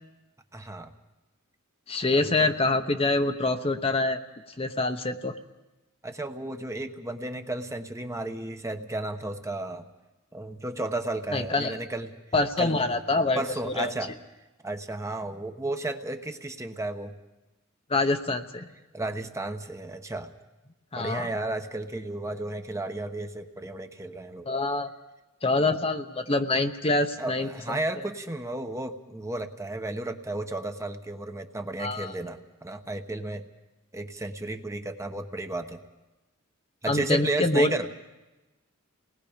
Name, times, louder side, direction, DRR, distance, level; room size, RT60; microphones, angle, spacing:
voice 1, 0.5-0.9 2.2-2.5 6.0-9.8 10.3-12.1 12.6-12.9 13.4-14.1 14.6-17.1 18.9-20.3 21.0-24.5 27.2-33.5 33.9-35.8 36.8-37.9, right 2 dB, 15° right, 6 dB, 1.0 m, -33 dB
voice 2, 1.9-4.2 4.6-5.4 11.3-11.8 12.3-13.9 17.9-18.7 20.9-21.3 24.4-24.9 25.4-27.8 31.8-32.1 36.9-37.7, left 2 dB, 30° left, 7 dB, 1.0 m, -25 dB
29.0 x 19.5 x 5.1 m, 1.1 s
head